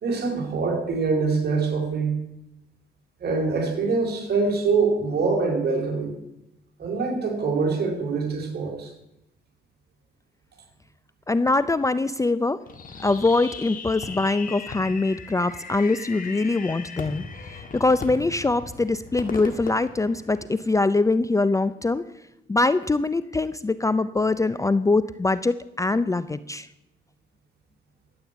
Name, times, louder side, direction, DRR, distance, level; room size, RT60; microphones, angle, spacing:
voice 1, 0.0-2.2 3.2-6.1 6.8-8.9, right 4 dB, 55° right, 1 dB, 4.5 m, -24 dB
voice 2, 11.3-12.6 13.0-22.0 22.5-26.7, left 3 dB, 15° left, 15 dB, 0.5 m, -23 dB
Fireworks, 12.7-20.8, left 5 dB, 45° left, 2.0 m, -38 dB
13.0 x 9.0 x 8.1 m, 0.88 s
cardioid pair, 90°, 20 cm